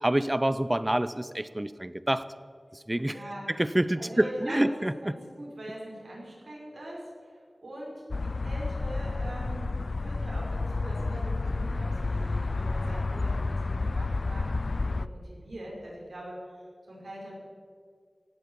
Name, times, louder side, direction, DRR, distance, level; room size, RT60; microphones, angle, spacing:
voice 1, 0.0-2.3 2.7-5.1, right 1 dB, 20° right, 15 dB, 0.7 m, -27 dB
voice 2, 3.0-3.5 4.0-14.6 14.8-16.4 16.9-17.3, right 1 dB, 85° right, -3 dB, 5.3 m, -42 dB
sound 1, 8.1-15.1, left 3 dB, 70° left, 0.4 m, -30 dB
18.5 x 15.0 x 4.8 m, 2.1 s
wide cardioid pair, 55°, 0 cm